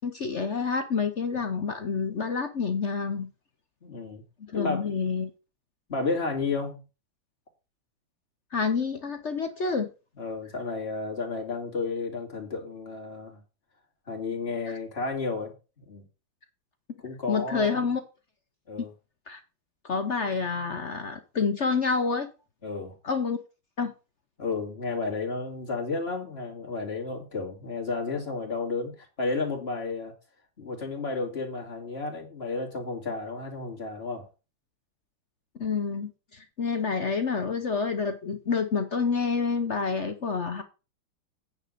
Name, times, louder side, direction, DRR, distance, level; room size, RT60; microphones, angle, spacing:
voice 1, 0.0-3.3 4.5-5.3 8.5-9.9 17.3-18.0 19.3-19.4 19.8-22.3 23.0-23.4 23.8-23.9 35.6-40.6, left 5 dB, 50° left, 0.9 m, -28 dB
voice 2, 3.8-4.2 4.5-4.9 5.9-6.8 10.2-13.4 14.1-16.0 17.0-17.9 18.7-18.9 22.6-22.9 24.4-30.1 30.6-34.2, left 3 dB, 30° left, 2.7 m, -32 dB
9.3 x 4.7 x 6.6 m
omnidirectional pair, 2.3 m